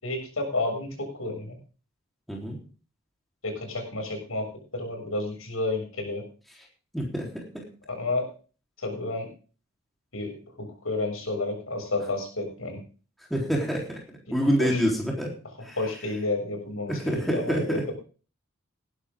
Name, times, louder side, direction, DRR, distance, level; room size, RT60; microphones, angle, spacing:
voice 1, 0.0-1.6 3.4-4.5 4.7-6.2 7.9-8.3 8.8-9.3 10.1-12.8 14.3-14.8 15.7-17.9, left 2 dB, 80° left, 3 dB, 6.9 m, -31 dB
voice 2, 6.9-7.4 13.3-14.0 14.3-15.3 15.6-15.8 16.9-17.9, equal, ahead, -2 dB, 3.8 m, -26 dB
18.5 x 11.0 x 3.7 m, 0.37 s
head